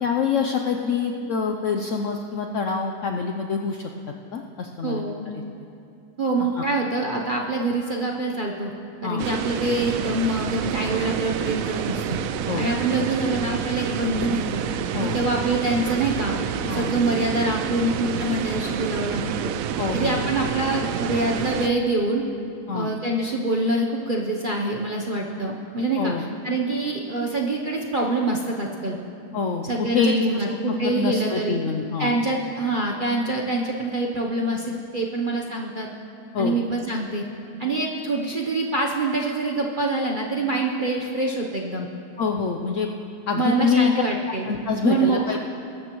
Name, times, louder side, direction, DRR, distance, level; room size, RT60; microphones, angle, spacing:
voice 1, 0.0-3.9 4.3-5.1 5.3-5.4 6.6-6.7 9.0-9.3 12.5-12.7 14.9-15.2 16.7-16.9 19.8-20.2 22.7-22.9 26.0-26.2 29.3-32.1 36.3-36.6 42.2-42.9 43.3-43.9 44.5-45.4, left 5 dB, 65° left, 3 dB, 0.7 m, -25 dB
voice 2, 4.8-5.3 6.2-8.7 9.0-12.2 12.6-14.6 15.0-16.4 16.7-19.5 19.9-22.2 22.7-26.1 26.4-29.0 29.6-31.6 32.0-35.9 36.4-37.2 37.6-41.9 43.4-44.5 44.8-45.4, right 2 dB, 45° right, -1 dB, 0.7 m, -25 dB
sound 1, 9.2-21.7, right 8 dB, 75° right, 0.7 m, -28 dB
21.5 x 12.5 x 3.0 m, 2.6 s
omnidirectional pair, 1.9 m